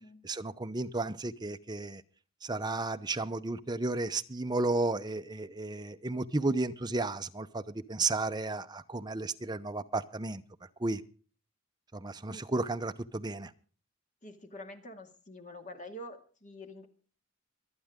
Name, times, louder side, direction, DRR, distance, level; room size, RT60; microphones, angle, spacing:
voice 1, 0.2-2.0 2.4-10.4 10.8-11.0 11.9-13.5, right 2 dB, 20° right, 0.7 m, -33 dB
voice 2, 14.2-16.9, left 1 dB, 40° left, 2.2 m, -46 dB
25.0 x 9.3 x 3.7 m
head